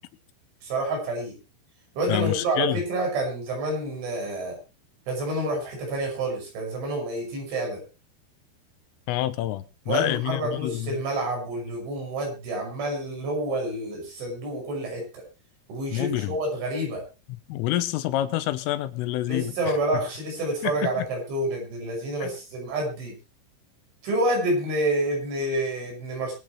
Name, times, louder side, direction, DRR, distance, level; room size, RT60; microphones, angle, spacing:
voice 1, 0.6-1.3 2.0-4.6 5.1-7.8 9.9-15.2 15.7-17.0 19.3-23.2 24.0-26.3, right 1 dB, 65° right, 8.5 m, -28 dB
voice 2, 2.1-2.8 9.1-11.0 15.9-16.4 17.3-19.6 20.6-21.1 22.2-22.3, left 14 dB, 80° left, 3.5 m, -28 dB
23.5 x 8.8 x 3.1 m
omnidirectional pair, 5.8 m